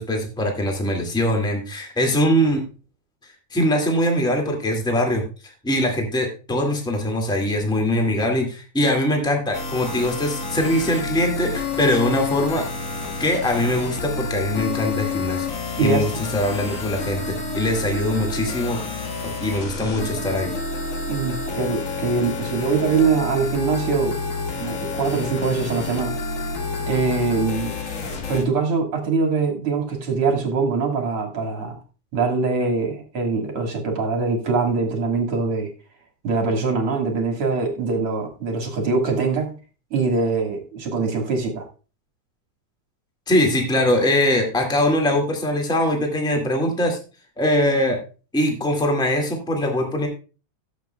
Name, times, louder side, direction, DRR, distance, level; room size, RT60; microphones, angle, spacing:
voice 1, 0.0-2.6 3.5-5.2 5.6-12.7 13.2-15.5 15.8-18.8 19.2-20.5 43.3-47.0 47.4-48.0 48.3-50.1, left 1 dB, ahead, 2 dB, 1.2 m, -22 dB
sound 1, 9.5-28.4, left 3 dB, 80° left, 0.7 m, -29 dB
voice 2, 15.8-16.1 21.1-24.2 24.6-26.2 26.9-27.7 28.3-31.8 32.1-35.7 36.2-39.6 39.9-41.7, right 4 dB, 50° right, 3 dB, 2.2 m, -23 dB
18.0 x 7.3 x 2.2 m, 0.34 s
omnidirectional pair, 3.6 m